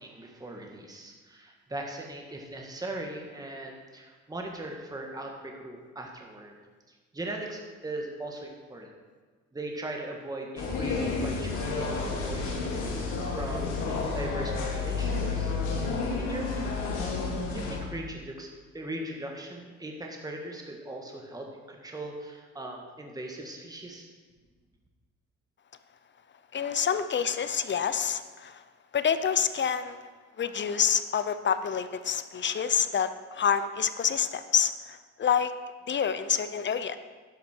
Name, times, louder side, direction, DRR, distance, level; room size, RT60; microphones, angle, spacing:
voice 1, 0.0-6.6 6.9-8.9 9.5-15.5 15.9-17.0 17.5-18.5 18.7-24.1, right 1 dB, 10° right, 1 dB, 1.8 m, -39 dB
sound 1, 10.6-17.8, left 4 dB, 80° left, 3.0 m, -30 dB
voice 2, 26.5-28.6 28.9-30.1 30.4-35.5 35.9-37.0, left 7 dB, 40° left, 12 dB, 0.7 m, -27 dB
11.5 x 10.5 x 4.6 m, 1.4 s
supercardioid pair, 85°, 30 cm